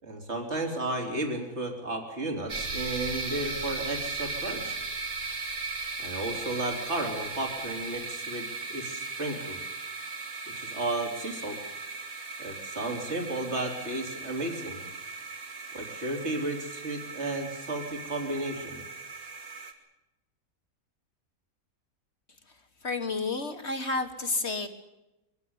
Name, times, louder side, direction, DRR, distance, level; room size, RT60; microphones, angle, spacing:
voice 1, 0.0-4.8 6.0-9.6 10.6-11.6 12.4-14.8 15.7-18.8, right 2 dB, 50° right, 3 dB, 3.8 m, -33 dB
sound 1, 2.5-19.7, right 4 dB, 70° right, 2.9 m, -37 dB
voice 2, 22.8-24.7, left 3 dB, 50° left, 7 dB, 1.8 m, -30 dB
24.0 x 17.0 x 9.6 m, 0.98 s
omnidirectional pair, 1.5 m